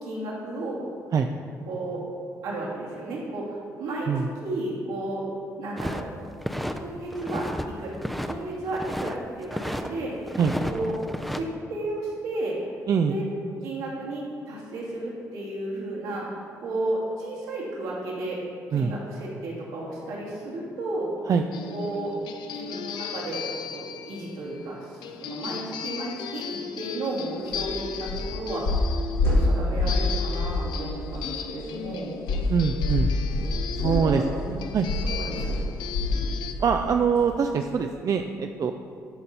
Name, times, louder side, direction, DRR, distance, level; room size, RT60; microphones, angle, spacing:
voice 1, 0.0-0.8 1.7-2.0 2.4-5.2 5.6-6.0 6.8-8.0 8.3-10.1 10.6-10.9 11.2-12.6 13.1-13.2 13.6-18.4 18.7-21.1 21.7-22.1 22.5-23.4 23.7-28.6 29.2-32.2 33.8-34.2 35.0-35.6, right 2 dB, 75° right, -5 dB, 2.2 m, -33 dB
sound 1, 5.8-6.8 7.1-7.7 7.9-9.2 9.5-9.9 10.3-11.4, equal, ahead, 0.6 m, -31 dB
sound 2, 21.5-36.5, left 7 dB, 65° left, 0.5 m, -37 dB
sound 3, 27.5-27.7 28.1-28.3 28.6-30.1 30.4-30.6 31.0-31.2 32.3-36.3 36.6-36.8 37.2-37.3, left 2 dB, 80° left, 2.4 m, -25 dB
voice 2, 32.5-33.1 33.8-34.2 34.5-34.9 36.6-38.7, right 6 dB, 45° right, 5 dB, 0.4 m, -23 dB
13.0 x 5.3 x 4.2 m, 2.3 s
hypercardioid pair, 45°, 8 cm